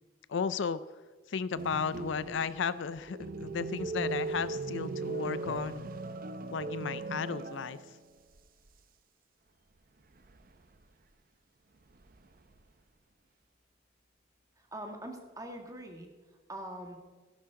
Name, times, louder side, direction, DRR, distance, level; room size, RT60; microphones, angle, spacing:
voice 1, 0.3-0.8 1.3-5.8 6.5-7.8, left 6 dB, 65° left, 15 dB, 0.4 m, -34 dB
sound 1, 1.6-8.1 8.4-8.5 10.2-10.8 11.9-12.6, right 3 dB, 45° right, 0.7 m, -38 dB
voice 2, 14.6-16.1 16.5-17.0, right 1 dB, 20° right, 3 dB, 1.8 m, -43 dB
16.5 x 11.5 x 3.8 m, 1.4 s
head